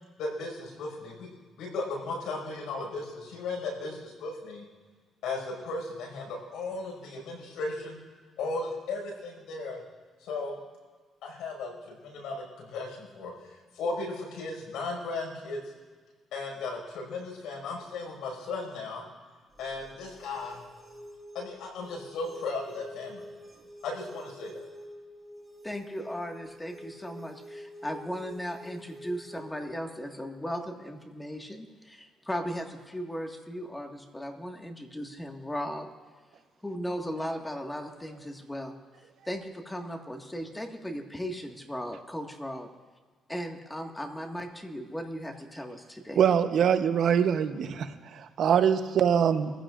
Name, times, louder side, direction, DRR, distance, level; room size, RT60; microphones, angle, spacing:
voice 1, 0.2-1.3 1.6-4.6 5.2-8.0 8.4-9.8 10.2-10.6 11.2-15.6 16.3-19.0 19.6-20.6 21.3-23.3 23.8-24.6, left 3 dB, 85° left, 0 dB, 5.6 m, -36 dB
sound 1, 19.5-29.5, equal, 15° right, 2.5 m, -47 dB
voice 2, 25.6-35.9 36.6-38.7 39.3-42.7 43.3-46.2, equal, 10° left, 3 dB, 1.8 m, -37 dB
voice 3, 46.2-49.5, right 8 dB, 70° right, 8 dB, 0.9 m, -24 dB
23.0 x 15.5 x 2.5 m, 1.4 s
cardioid pair, 90°, 0 cm